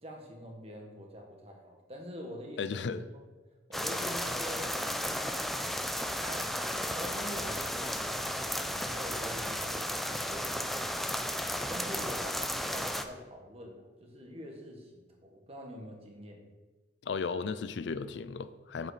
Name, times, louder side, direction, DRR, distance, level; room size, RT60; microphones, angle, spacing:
voice 1, 0.0-2.8 3.1-3.2 3.7-5.4 6.1-6.5 6.8-16.5, equal, 35° right, 1 dB, 1.6 m, -45 dB
voice 2, 2.6-3.0 17.0-18.9, left 5 dB, 75° left, 13 dB, 0.4 m, -35 dB
sound 1, 3.7-13.0, equal, ahead, 0.5 m, -34 dB
8.3 x 7.4 x 4.1 m, 1.2 s
head